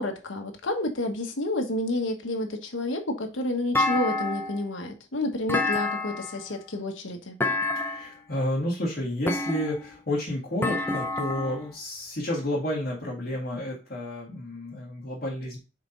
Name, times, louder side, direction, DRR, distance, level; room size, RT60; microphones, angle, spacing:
voice 1, 0.0-7.4, left 1 dB, 90° left, 1.3 m, -30 dB
Thump thud, 3.7-4.7 5.5-6.4 7.4-8.2 9.3-10.0 10.6-11.6, left 2 dB, 10° left, 0.5 m, -28 dB
voice 2, 7.8-15.6, left 1 dB, 50° left, 2.0 m, -31 dB
5.9 x 4.4 x 4.0 m
head